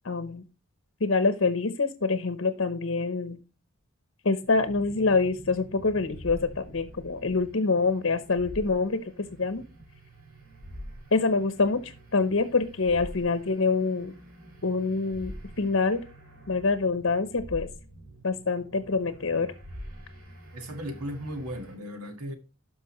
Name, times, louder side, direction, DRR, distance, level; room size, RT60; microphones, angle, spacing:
voice 1, 0.0-0.4 1.0-3.4 4.2-9.0 9.4-9.6 11.1-14.1 14.6-15.3 15.6-16.0 16.5-17.7 18.2-19.5, left 4 dB, 60° left, 0.8 m, -25 dB
sound 1, 4.4-21.8, equal, 70° right, 3.6 m, -46 dB
voice 2, 20.5-22.4, equal, 90° right, 1.7 m, -36 dB
12.0 x 5.2 x 3.0 m
head